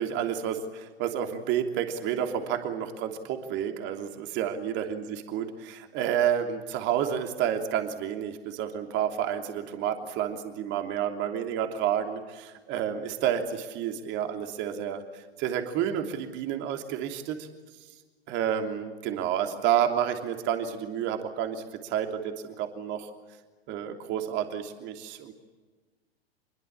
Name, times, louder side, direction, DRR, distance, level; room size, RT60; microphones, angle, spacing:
voice 1, 0.0-17.5 18.3-23.1 23.7-25.3, right 9 dB, 35° right, 6 dB, 3.1 m, -30 dB
26.5 x 22.5 x 8.7 m, 1.3 s
figure-of-eight pair, 100°, 31 cm